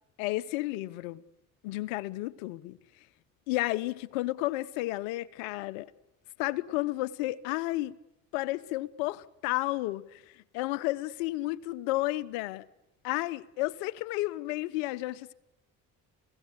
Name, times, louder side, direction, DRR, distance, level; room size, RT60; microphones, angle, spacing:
voice 1, 0.2-1.2 1.6-2.8 3.5-5.9 6.4-8.0 8.3-10.2 10.5-12.7 13.0-15.3, left 18 dB, 85° left, 1.1 m, -32 dB
29.5 x 17.5 x 9.8 m
hypercardioid pair, 60°, 39 cm